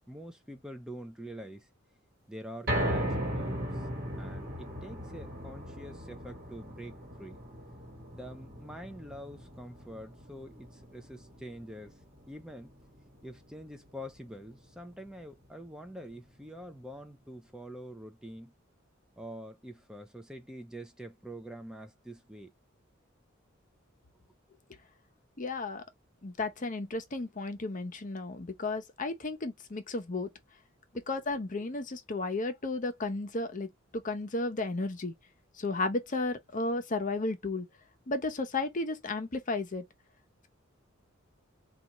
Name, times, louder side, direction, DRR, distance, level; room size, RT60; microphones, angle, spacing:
voice 1, 0.1-1.7 2.3-3.9 4.2-7.4 8.1-12.0 12.3-12.7 13.2-18.5 19.2-22.5, equal, 5° right, 0.5 m, -45 dB
sound 1, 2.7-14.9 15.3-15.4 15.9-16.0, equal, 45° right, 1.3 m, -38 dB
voice 2, 25.4-25.8 26.2-30.3 31.1-35.1 35.6-37.7 38.1-39.8, left 2 dB, 40° left, 0.7 m, -33 dB
4.1 x 2.4 x 2.9 m
head